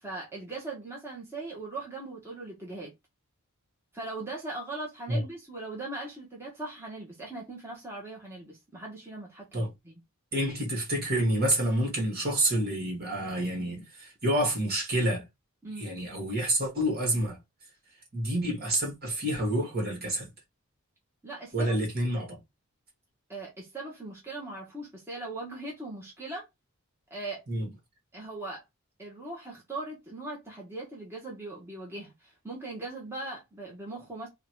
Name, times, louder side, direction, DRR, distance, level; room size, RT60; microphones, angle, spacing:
voice 1, 0.0-2.9 3.9-10.0 15.6-15.9 21.2-21.8 23.3-26.4 27.1-27.4 28.1-28.6 29.0-34.3, right 2 dB, 10° right, 1.1 m, -40 dB
voice 2, 10.3-15.2 15.8-17.4 18.1-20.3 21.5-22.4 27.5-27.7, right 1 dB, 45° right, 1.9 m, -28 dB
3.8 x 2.4 x 4.5 m
head